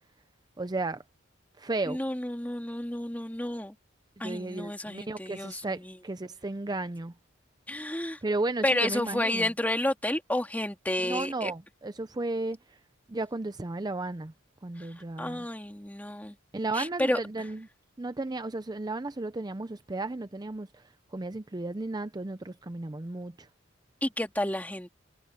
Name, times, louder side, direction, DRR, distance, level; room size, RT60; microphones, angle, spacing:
voice 1, 0.6-1.0 1.6-2.0 4.2-7.1 8.2-9.5 11.0-12.8 13.1-14.3 14.6-15.4 16.5-17.7 18.0-23.5, right 2 dB, 20° right, 0.5 m, -34 dB
voice 2, 1.9-3.8 4.2-6.0 7.7-8.2 8.6-11.5 14.8-16.4 16.7-17.2 24.0-24.9, left 1 dB, 10° left, 2.3 m, -31 dB
head